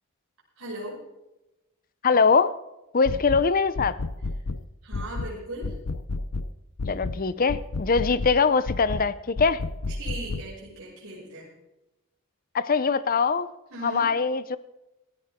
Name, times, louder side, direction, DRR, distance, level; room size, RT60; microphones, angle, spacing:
voice 1, 0.6-1.0 4.8-5.8 9.9-11.5 13.7-14.1, right 2 dB, 75° right, -6 dB, 6.0 m, -38 dB
voice 2, 2.0-2.5 2.9-4.0 6.9-9.6 12.5-13.5 13.8-14.6, left 5 dB, 40° left, 15 dB, 0.6 m, -22 dB
sound 1, 3.1-3.5 3.8-4.6 4.9-5.3 5.6-6.5 6.8-7.2 7.5-8.4 8.7-9.1 9.4-10.5, left 3 dB, 85° left, 0.8 m, -31 dB
18.0 x 14.5 x 3.6 m, 0.97 s
head